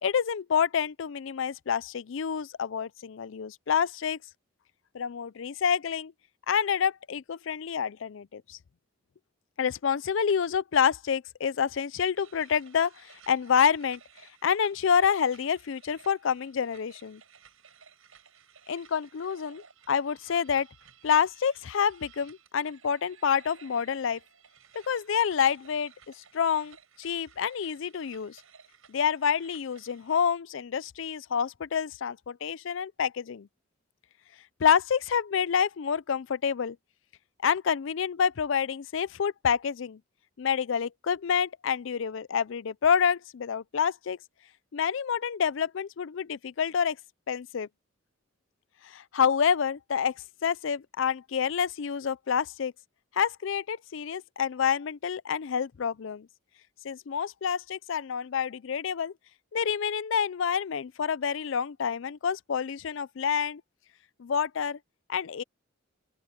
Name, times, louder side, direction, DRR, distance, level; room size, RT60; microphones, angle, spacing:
voice 1, 0.0-4.2 4.9-6.1 6.5-8.6 9.6-14.0 14.4-17.2 18.7-20.7 21.0-24.2 24.9-28.4 28.9-33.5 34.6-36.8 37.4-40.0 40.4-44.2 44.7-47.0 47.3-47.7 48.8-50.1 50.4-52.7 53.1-56.3 56.8-59.1 59.5-63.6 64.2-64.8 65.1-65.4, left 7 dB, 65° left, 0.4 m, -28 dB
sound 1, 12.1-30.2, right 7 dB, 80° right, 6.5 m, -57 dB
open air
head